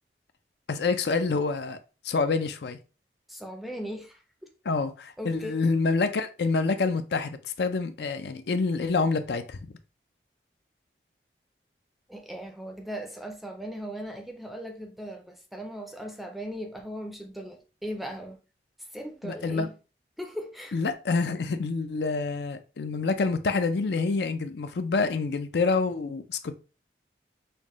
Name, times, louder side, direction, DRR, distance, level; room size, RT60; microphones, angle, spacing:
voice 1, 0.7-1.8 2.0-2.8 4.7-9.6 19.2-19.7 20.7-26.5, left 4 dB, 70° left, 0.5 m, -27 dB
voice 2, 3.3-4.5 5.2-5.6 12.1-18.4 18.8-19.7 20.2-20.8, equal, ahead, 0.4 m, -38 dB
5.5 x 2.2 x 3.0 m
head